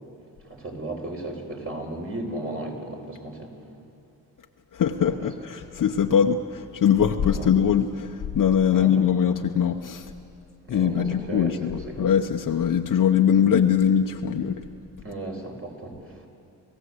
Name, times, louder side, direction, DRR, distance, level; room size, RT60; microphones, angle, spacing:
voice 1, 0.4-3.5 5.0-5.3 7.3-7.5 8.7-8.9 10.6-12.1 15.0-16.3, right 2 dB, 35° right, 1 dB, 5.2 m, -35 dB
voice 2, 4.7-10.1 10.7-14.6, left 8 dB, 55° left, 3 dB, 1.0 m, -22 dB
29.5 x 15.0 x 8.1 m, 2.5 s
cardioid pair, 70°, 38 cm